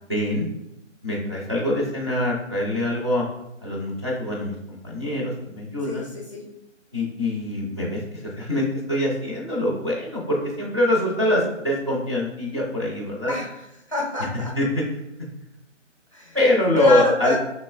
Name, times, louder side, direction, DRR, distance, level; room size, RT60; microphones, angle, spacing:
voice 1, 0.1-0.5 1.0-3.2 3.6-6.1 6.9-13.3 14.3-14.8 16.3-17.3, left 1 dB, 25° right, -5 dB, 0.5 m, -24 dB
voice 2, 5.9-6.4 13.3-13.5 13.9-14.5 16.1-16.4 16.8-17.3, left 3 dB, 25° left, -3 dB, 0.5 m, -25 dB
5.5 x 3.0 x 2.3 m, 0.87 s
figure-of-eight pair, 145°, 37 cm